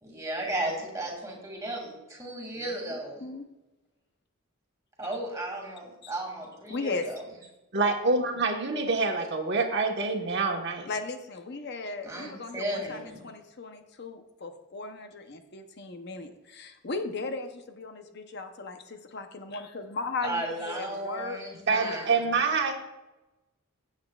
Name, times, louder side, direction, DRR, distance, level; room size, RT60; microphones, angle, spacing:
voice 1, 0.0-3.2 5.0-7.2 12.0-13.2 20.2-22.2, right 1 dB, 15° right, -1 dB, 2.3 m, -35 dB
voice 2, 2.5-3.5 6.0-6.1 6.7-7.1 10.9-21.4, left 3 dB, 50° left, 6 dB, 0.7 m, -37 dB
voice 3, 7.7-10.9 21.7-22.7, right 3 dB, 50° right, 3 dB, 1.3 m, -26 dB
15.5 x 8.1 x 2.4 m, 1.0 s
head